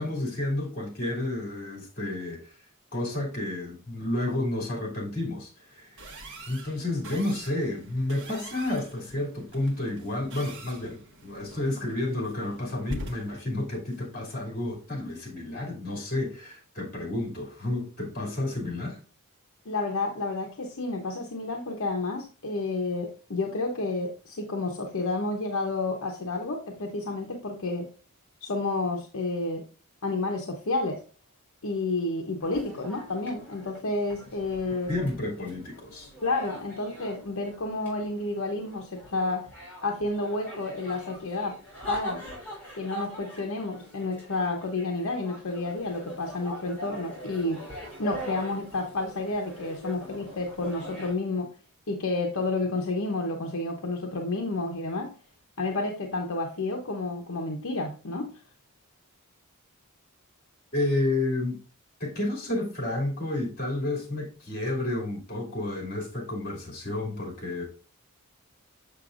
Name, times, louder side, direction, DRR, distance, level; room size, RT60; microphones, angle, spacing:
voice 1, 0.0-2.5 2.9-6.0 6.5-19.0 34.9-36.1 60.7-61.6 62.0-67.6, left 2 dB, 45° left, 2.6 m, -31 dB
sound 1, 6.0-15.1, right 1 dB, 60° right, 1.3 m, -45 dB
voice 2, 19.7-27.9 28.4-29.7 30.0-31.0 31.6-34.9 36.2-39.5 39.8-41.6 41.9-42.2 42.7-47.6 48.0-51.5 51.9-55.1 55.6-58.3, left 2 dB, 65° left, 0.9 m, -30 dB
sound 2, 32.4-51.2, right 1 dB, 5° left, 3.7 m, -43 dB
6.8 x 6.7 x 2.5 m
head